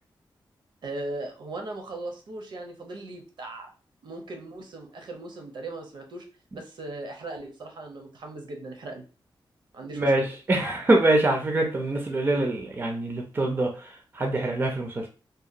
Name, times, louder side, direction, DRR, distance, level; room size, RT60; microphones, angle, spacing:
voice 1, 0.8-3.7 4.0-6.2 6.5-9.0 9.7-10.3, right 2 dB, 65° right, 0.6 m, -38 dB
voice 2, 9.9-15.1, right 2 dB, 25° right, 0.4 m, -24 dB
2.8 x 2.2 x 2.4 m
wide cardioid pair, 175°, 8 cm